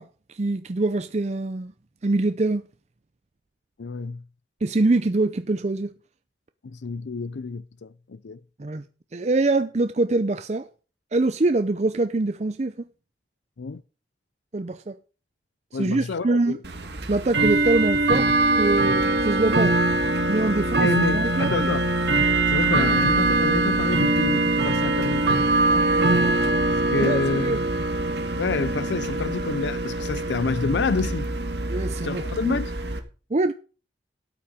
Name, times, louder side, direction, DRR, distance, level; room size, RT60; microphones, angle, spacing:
voice 1, 0.0-1.7 2.0-2.6 4.6-5.9 8.6-8.8 9.1-10.7 11.1-12.7 14.5-15.0 15.7-16.6 17.1-19.8 20.3-20.9 21.1-21.7 26.2-26.4 26.9-27.6 31.7-32.6 33.3-33.5, right 2 dB, 40° right, 0.5 m, -24 dB
voice 2, 3.8-4.2 6.6-8.4 13.6-13.8 15.7-16.6 20.6-21.9 22.5-25.3 26.7-27.6 28.4-31.3 32.0-32.7, left 4 dB, 80° left, 0.5 m, -28 dB
Bell / Tick-tock, 16.6-33.0, right 2 dB, 70° right, 1.7 m, -23 dB
13.0 x 8.8 x 5.0 m
head